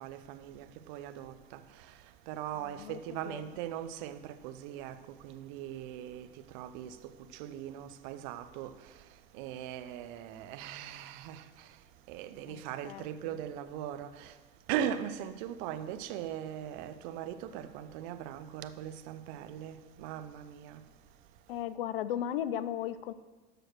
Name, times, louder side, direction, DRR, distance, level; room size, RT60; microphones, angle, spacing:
voice 1, 0.0-1.6 2.3-5.0 5.2-6.3 6.5-7.0 7.3-8.7 9.3-11.4 12.1-14.3 14.7-20.8, right 10 dB, 55° right, 0.5 m, -39 dB
voice 2, 12.5-13.3 21.5-23.1, left 10 dB, 70° left, 0.4 m, -36 dB
6.2 x 4.9 x 6.1 m
figure-of-eight pair, 70°, 29 cm